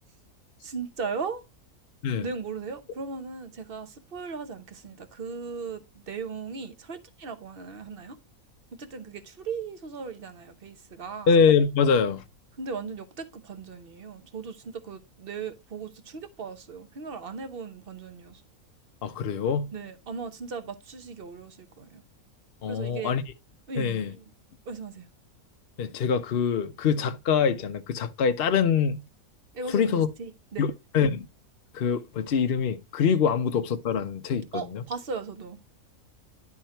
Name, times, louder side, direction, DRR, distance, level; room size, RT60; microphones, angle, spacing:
voice 1, 0.6-1.4 2.2-8.2 8.7-11.4 12.6-18.4 19.7-22.0 22.7-23.2 23.7-24.3 24.6-25.1 29.5-30.7 34.5-35.6, right 5 dB, 45° right, 0.9 m, -37 dB
voice 2, 11.3-12.2 19.0-19.7 22.6-23.2 23.8-24.1 25.8-29.0 29.7-30.1 30.6-31.3 31.7-34.6, left 6 dB, 55° left, 0.7 m, -24 dB
10.5 x 3.6 x 4.3 m
omnidirectional pair, 1.5 m